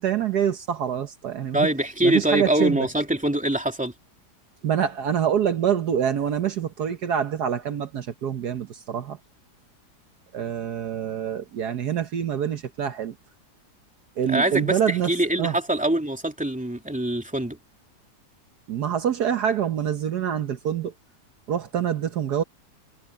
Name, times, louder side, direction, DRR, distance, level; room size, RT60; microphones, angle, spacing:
voice 1, 0.0-1.7 2.0-2.9 4.6-9.2 10.3-13.1 14.2-15.6 18.7-20.9 21.5-22.4, right 9 dB, 70° right, 1.6 m, -26 dB
voice 2, 1.5-3.9 14.2-17.6, right 1 dB, 5° right, 2.7 m, -24 dB
omnidirectional pair, 1.8 m